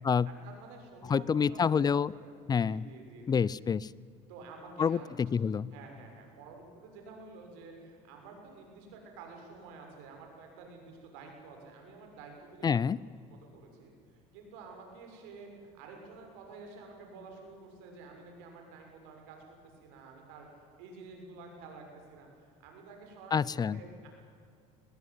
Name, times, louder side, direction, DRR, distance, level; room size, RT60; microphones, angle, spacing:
voice 1, 0.2-2.3 2.6-3.4 4.3-5.1 5.7-12.8 13.4-19.4 19.8-24.1, right 4 dB, 85° right, 2 dB, 6.6 m, -50 dB
voice 2, 1.1-2.1 2.5-2.8 3.3-3.9 4.8-5.7 12.6-13.0 23.3-23.8, left 6 dB, 30° left, 22 dB, 0.6 m, -27 dB
22.5 x 21.0 x 9.6 m, 2.3 s
supercardioid pair, 95°, 14 cm